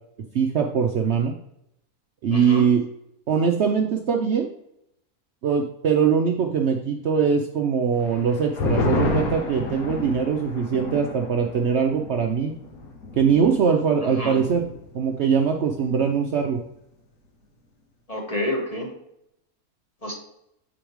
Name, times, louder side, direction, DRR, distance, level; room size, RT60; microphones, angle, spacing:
voice 1, 0.3-1.3 2.2-2.8 3.3-4.5 5.4-12.5 13.2-14.6 14.9-16.6, right 6 dB, 60° right, 2 dB, 0.8 m, -22 dB
voice 2, 2.3-2.6 14.0-14.4 18.1-18.9 20.0-20.1, left 1 dB, 25° left, -1 dB, 1.3 m, -29 dB
sound 1, 8.0-14.9 15.2-15.3 15.7-16.2, left 2 dB, 75° left, 1.5 m, -30 dB
7.9 x 5.0 x 3.0 m, 0.79 s
omnidirectional pair, 1.6 m